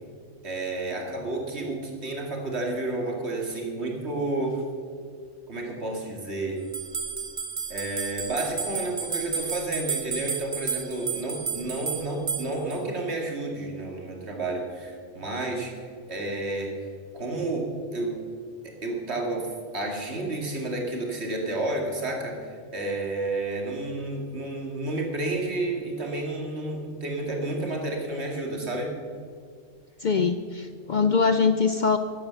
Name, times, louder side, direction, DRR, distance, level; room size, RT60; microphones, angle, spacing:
voice 1, 0.4-4.6 5.5-6.6 7.7-16.9 17.1-18.2 18.6-29.0, right 2 dB, 65° right, 1 dB, 2.5 m, -31 dB
sound 1, 6.7-12.8, right 6 dB, 40° right, 1.5 m, -32 dB
voice 2, 30.0-32.0, left 5 dB, 55° left, 9 dB, 0.6 m, -23 dB
13.5 x 9.6 x 6.9 m, 2.2 s
omnidirectional pair, 1.2 m